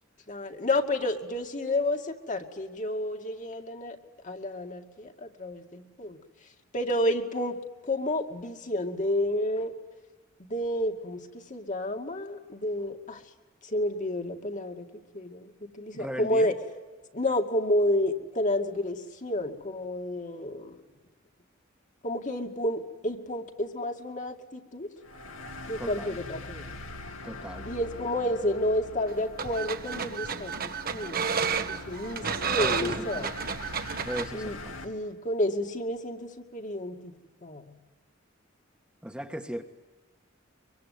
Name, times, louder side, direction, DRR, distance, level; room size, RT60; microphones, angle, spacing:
voice 1, 0.3-4.0 4.2-6.2 6.7-9.7 10.4-13.2 13.6-16.5 17.1-20.8 22.0-24.9 25.7-26.7 27.6-33.3 34.3-34.6 34.8-37.1 37.4-37.8, left 1 dB, 40° left, 4 dB, 2.3 m, -30 dB
voice 2, 15.9-16.5 25.8-26.2 27.2-27.7 32.5-33.3 34.0-34.8 39.0-39.6, equal, 5° right, 4 dB, 1.6 m, -37 dB
sound 1, 25.0-34.8, left 2 dB, 75° left, 3.1 m, -43 dB
sound 2, 29.1-34.3, right 6 dB, 45° right, 1.4 m, -31 dB
24.0 x 24.0 x 9.5 m, 1.2 s
head